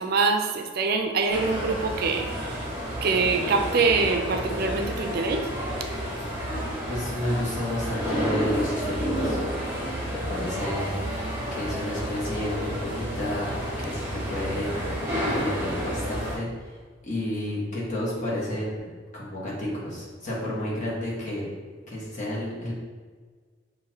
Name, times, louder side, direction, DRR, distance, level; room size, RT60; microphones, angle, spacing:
voice 1, 0.0-2.7 3.0-5.5, right 4 dB, 55° right, 5 dB, 0.4 m, -24 dB
sound 1, 1.3-16.4, equal, 10° right, 1.1 m, -30 dB
voice 2, 6.9-9.4 10.1-11.0 11.5-16.8 17.0-18.9 19.1-21.5 21.9-22.7, left 1 dB, 45° left, -6 dB, 1.5 m, -31 dB
6.3 x 2.6 x 2.9 m, 1.5 s
head